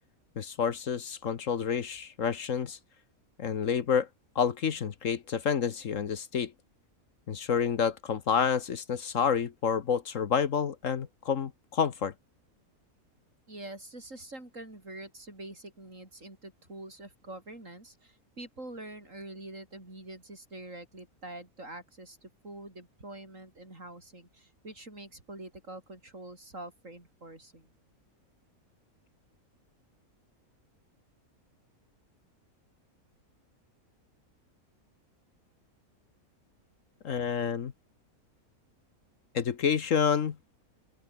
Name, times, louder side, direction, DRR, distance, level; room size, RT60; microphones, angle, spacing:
voice 1, 0.4-2.8 3.4-4.1 4.3-6.5 7.3-12.1 37.0-37.7 39.3-40.4, left 7 dB, 60° left, 1.4 m, -29 dB
voice 2, 13.5-27.7, right 1 dB, 60° right, 7.4 m, -45 dB
open air
omnidirectional pair, 1.5 m